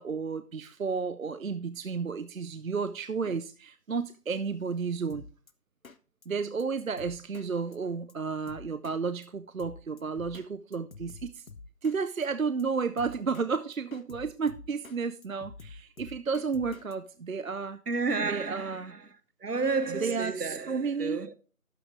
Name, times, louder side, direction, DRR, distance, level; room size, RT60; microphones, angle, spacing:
voice 1, 0.0-5.3 6.3-11.5 11.8-17.8 18.2-18.9 20.0-21.2, right 5 dB, 60° right, 0.5 m, -32 dB
Drum kit, 5.1-5.5 5.8-6.0 6.2-6.3 6.6-6.7 7.0-7.5 7.7-7.8 8.1-8.2 8.5-9.0 9.2-9.3 9.6-10.5 10.7-12.0 12.2-12.3 12.6-12.7 13.0-13.5 13.7-15.0 15.2-16.9, left 4 dB, 60° left, 0.8 m, -47 dB
voice 2, 17.9-19.1 19.4-21.4, right 4 dB, 75° right, 1.1 m, -31 dB
12.0 x 5.8 x 3.5 m
figure-of-eight pair, 165°, 47 cm